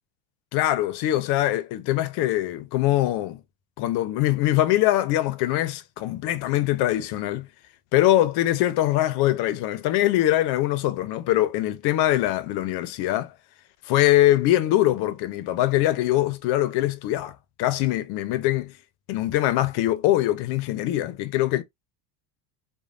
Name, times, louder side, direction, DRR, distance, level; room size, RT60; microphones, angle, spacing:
voice 1, 0.5-3.4 3.8-7.5 7.9-13.3 13.9-18.7 19.1-21.6, left 14 dB, 55° left, 0.6 m, -23 dB
3.0 x 2.2 x 2.4 m
supercardioid pair, 120°, 47 cm